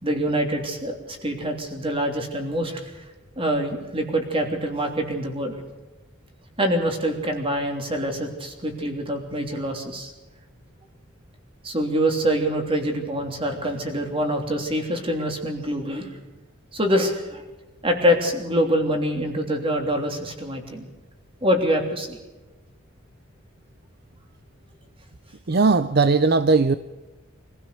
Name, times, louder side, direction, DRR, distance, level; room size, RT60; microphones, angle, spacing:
voice 1, 0.0-2.9 3.4-5.6 6.6-10.1 11.6-16.1 16.7-17.4 17.8-20.9 21.4-22.2, equal, 25° right, 3 dB, 3.1 m, -25 dB
voice 2, 25.5-26.7, right 4 dB, 50° right, 12 dB, 0.6 m, -18 dB
25.0 x 15.5 x 6.9 m, 1.2 s
head